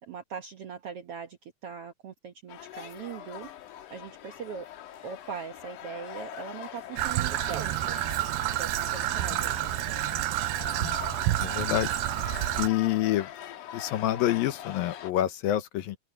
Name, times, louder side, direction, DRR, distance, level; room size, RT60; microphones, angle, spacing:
voice 1, 0.0-3.5 3.9-4.7 5.0-8.0 8.6-9.6 11.6-11.8 12.6-13.1, right 7 dB, 65° right, 1.5 m, -40 dB
sound 1, 2.5-15.1, left 11 dB, 65° left, 2.6 m, -42 dB
Traffic noise roadway noise / Trickle dribble, 7.0-12.7, right 16 dB, 85° right, 2.4 m, -29 dB
voice 2, 11.4-11.9 12.6-13.3 13.7-16.0, left 13 dB, 85° left, 2.9 m, -27 dB
omnidirectional pair, 4.1 m